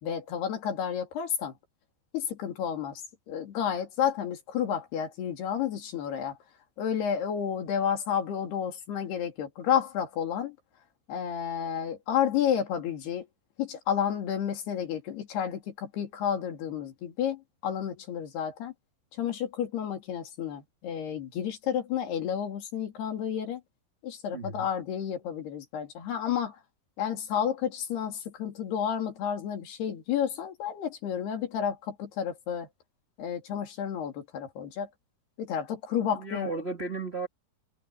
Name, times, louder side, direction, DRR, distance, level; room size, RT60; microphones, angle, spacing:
voice 1, 0.0-1.5 2.1-6.4 6.8-10.6 11.1-13.3 13.6-18.7 19.1-23.6 24.0-26.6 27.0-32.7 33.2-34.9 35.4-36.6, left 9 dB, 75° left, 4.7 m, -31 dB
voice 2, 24.3-24.7 36.0-37.3, right 3 dB, 85° right, 0.5 m, -35 dB
omnidirectional pair, 4.7 m